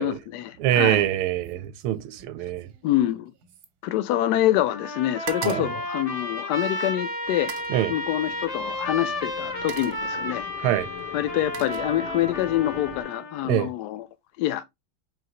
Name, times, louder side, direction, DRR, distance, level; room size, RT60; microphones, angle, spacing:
voice 1, 0.0-1.1 2.8-3.3 3.8-7.5 7.9-10.5 11.1-14.1 14.4-14.7, left 13 dB, 75° left, 1.0 m, -26 dB
voice 2, 0.6-2.7 5.4-5.7 7.7-7.9 10.6-10.9 13.4-13.7, right 13 dB, 85° right, 1.4 m, -24 dB
sound 1, 0.8-1.1 1.4-4.6 4.8-6.7 7.3-7.8 8.8-9.0 9.4-10.1 11.0-12.4 12.7-13.1, right 7 dB, 65° right, 1.0 m, -42 dB
Trumpet, 4.7-13.5, left 1 dB, 50° left, 0.4 m, -32 dB
sound 2, 7.2-13.0, left 6 dB, 90° left, 2.2 m, -42 dB
4.9 x 3.1 x 2.7 m
omnidirectional pair, 2.3 m